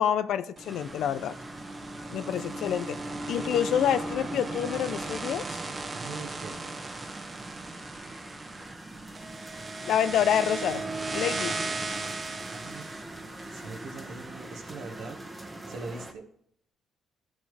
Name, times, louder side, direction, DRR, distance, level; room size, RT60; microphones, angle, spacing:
voice 1, 0.0-1.4 2.1-3.0 3.3-5.6 9.8-10.8 11.1-11.6, left 9 dB, 75° left, 13 dB, 0.6 m, -27 dB
sound 1, 0.6-14.7, right 2 dB, 30° right, 1.2 m, -37 dB
sound 2, 0.7-16.1, right 1 dB, 15° right, 1.3 m, -45 dB
voice 2, 5.9-6.6 12.5-12.9 13.5-15.2 15.7-16.3, right 3 dB, 75° right, 3 dB, 1.8 m, -41 dB
13.0 x 7.4 x 3.4 m, 0.67 s
cardioid pair, 90°, 0 cm